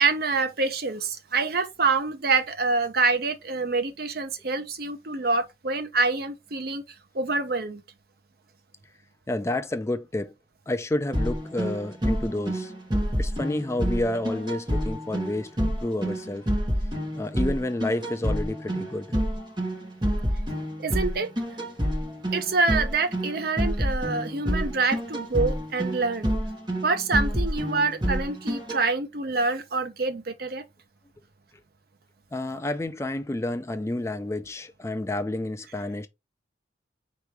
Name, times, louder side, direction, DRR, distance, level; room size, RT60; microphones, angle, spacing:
voice 1, 0.0-6.8 7.1-7.8 20.8-21.3 22.3-26.3 26.8-30.6, right 3 dB, 55° right, 0.7 m, -26 dB
voice 2, 9.3-10.3 10.7-12.7 13.2-16.5 17.1-19.1 32.3-36.1, left 1 dB, 15° left, 0.3 m, -30 dB
sound 1, 11.1-28.8, equal, 25° right, 1.3 m, -28 dB
4.7 x 3.0 x 3.3 m
head